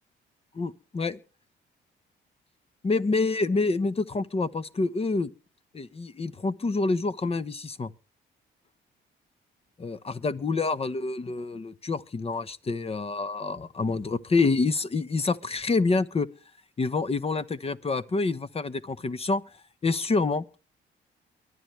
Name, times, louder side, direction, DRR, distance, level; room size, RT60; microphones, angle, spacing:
voice 1, 0.5-1.2 2.8-5.3 5.7-7.9 9.8-16.3 16.8-19.4 19.8-20.4, left 3 dB, 30° left, 1.1 m, -27 dB
23.5 x 9.5 x 3.3 m
cardioid pair, 90°, 20 cm